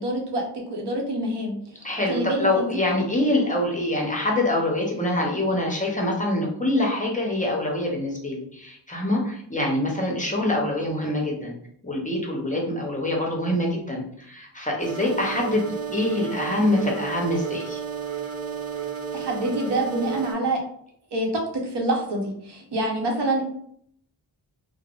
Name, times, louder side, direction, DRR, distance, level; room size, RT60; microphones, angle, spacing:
voice 1, 0.0-1.6 2.1-2.7 19.1-20.6 21.1-23.4, right 1 dB, 75° right, 1 dB, 0.8 m, -26 dB
voice 2, 1.8-11.5 11.8-17.8, left 1 dB, 20° left, -2 dB, 0.6 m, -25 dB
sound 1, 14.8-20.3, right 7 dB, 35° right, 0.6 m, -32 dB
3.3 x 2.0 x 2.3 m, 0.66 s
wide cardioid pair, 100°, 41 cm